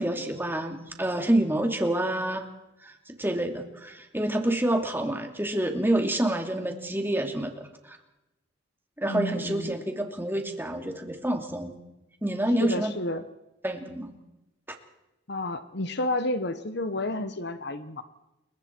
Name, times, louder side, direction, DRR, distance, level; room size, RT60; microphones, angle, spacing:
voice 1, 0.0-2.5 2.8-8.0 9.0-11.7 12.2-12.9 13.6-14.2, right 1 dB, 10° right, 4 dB, 2.6 m, -28 dB
voice 2, 9.0-9.8 12.6-13.2 15.3-18.0, left 1 dB, 60° left, 11 dB, 1.1 m, -31 dB
29.5 x 23.0 x 4.6 m, 0.95 s
head